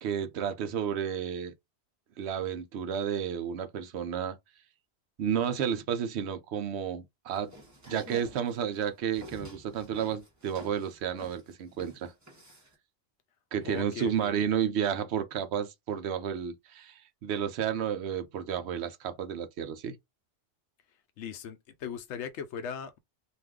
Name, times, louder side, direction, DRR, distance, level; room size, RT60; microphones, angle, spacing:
voice 1, 0.0-1.5 2.2-4.4 5.2-7.5 7.9-12.1 13.5-20.0, right 8 dB, 75° right, 0.8 m, -32 dB
sound 1, 7.3-12.7, right 1 dB, 15° right, 0.8 m, -49 dB
voice 2, 13.6-14.4 21.2-23.0, left 6 dB, 85° left, 0.9 m, -39 dB
2.5 x 2.4 x 3.5 m
omnidirectional pair, 1.2 m